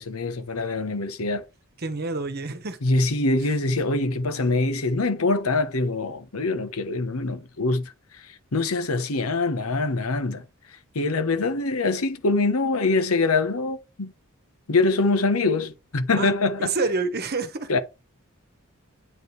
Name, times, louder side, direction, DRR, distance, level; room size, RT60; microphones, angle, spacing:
voice 1, 0.0-1.5 2.8-10.4 10.9-14.1 14.7-16.7 17.7-17.8, left 3 dB, 90° left, 1.0 m, -24 dB
voice 2, 1.8-2.8 16.1-16.3 16.6-17.7, right 3 dB, 50° right, 1.1 m, -28 dB
8.9 x 4.4 x 3.3 m
head